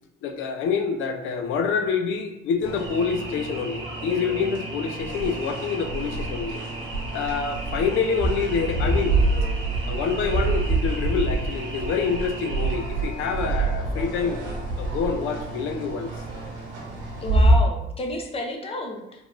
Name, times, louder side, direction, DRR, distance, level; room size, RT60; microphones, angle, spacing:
voice 1, 0.2-6.6 7.1-9.2 9.9-14.4 14.8-16.1, left 6 dB, 85° left, 6 dB, 0.4 m, -26 dB
sound 1, 2.6-17.5, right 2 dB, 80° right, 0.9 m, -27 dB
voice 2, 17.2-19.2, left 1 dB, 30° left, 2 dB, 0.5 m, -31 dB
3.3 x 2.3 x 2.4 m, 0.87 s
cardioid pair, 90°, 20 cm